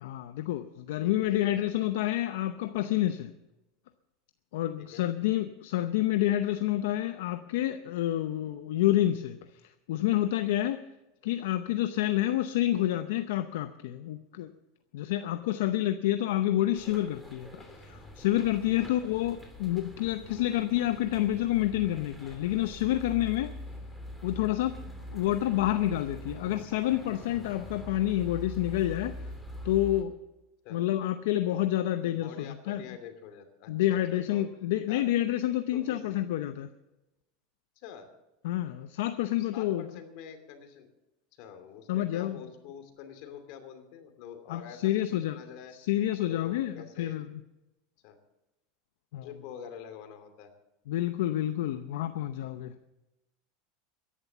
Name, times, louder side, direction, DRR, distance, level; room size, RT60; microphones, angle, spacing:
voice 1, 0.0-3.3 4.5-10.8 11.2-14.5 14.9-23.5 24.2-24.8 25.1-29.2 29.6-30.2 30.7-32.8 33.7-36.7 38.4-39.8 41.9-42.4 44.5-45.4 45.7-47.4 49.1-49.3 50.9-52.7, left 13 dB, 80° left, 9 dB, 0.7 m, -28 dB
voice 2, 0.9-1.7 4.8-5.0 18.8-19.2 30.6-30.8 31.9-34.5 34.9-35.0 35.7-36.0 37.8-38.1 39.3-40.9 41.4-45.8 46.3-47.2 48.0-48.2 49.1-50.5, left 8 dB, 60° left, 7 dB, 2.7 m, -46 dB
sound 1, 16.7-30.0, left 1 dB, ahead, 2.9 m, -44 dB
14.0 x 11.0 x 6.9 m, 0.96 s
supercardioid pair, 130°, 0 cm